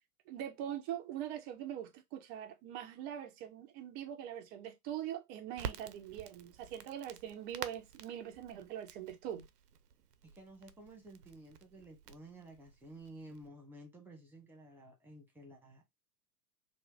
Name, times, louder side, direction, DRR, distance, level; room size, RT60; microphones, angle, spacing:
voice 1, 0.3-9.5, right 10 dB, 20° right, 0.4 m, -42 dB
Crackle, 5.5-13.5, right 8 dB, 80° right, 0.6 m, -49 dB
voice 2, 10.3-15.9, right 1 dB, 5° right, 1.0 m, -53 dB
3.0 x 2.2 x 3.4 m
figure-of-eight pair, 95°, 47 cm